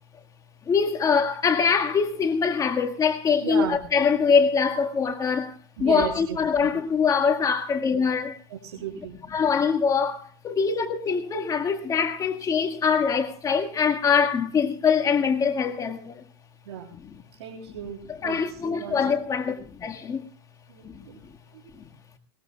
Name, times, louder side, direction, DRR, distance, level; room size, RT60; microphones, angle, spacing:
voice 1, 0.6-8.4 9.3-16.2 18.1-20.2 20.9-21.0, left 6 dB, 25° left, 1.8 m, -23 dB
voice 2, 3.4-3.8 5.8-6.7 8.5-9.2 16.7-16.9 17.4-19.0 20.7-21.2 21.5-21.6, right 9 dB, 80° right, 3.7 m, -35 dB
21.0 x 20.5 x 2.3 m
supercardioid pair, 130°, 14 cm